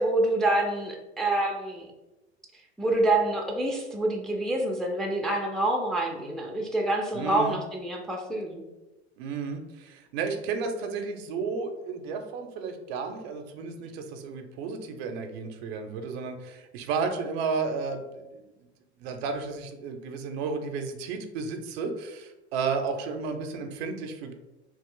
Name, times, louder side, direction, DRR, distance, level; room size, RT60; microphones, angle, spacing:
voice 1, 0.0-1.9 2.8-8.6, right 2 dB, ahead, 0 dB, 0.4 m, -27 dB
voice 2, 7.1-7.6 9.2-18.4 19.0-24.3, right 5 dB, 65° right, 6 dB, 0.6 m, -33 dB
3.0 x 2.4 x 3.7 m, 1.0 s
hypercardioid pair, 95°, 33 cm